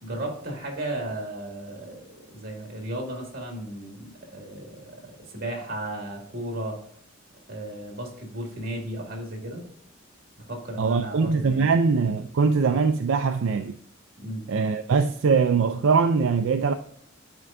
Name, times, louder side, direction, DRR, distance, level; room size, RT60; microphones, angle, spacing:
voice 1, 0.0-6.8 7.5-9.6 10.5-11.7 14.2-14.5, right 1 dB, 50° right, 2.1 m, -35 dB
voice 2, 10.8-13.7 14.5-16.7, right 5 dB, 75° right, 0.4 m, -22 dB
9.9 x 4.4 x 2.5 m
head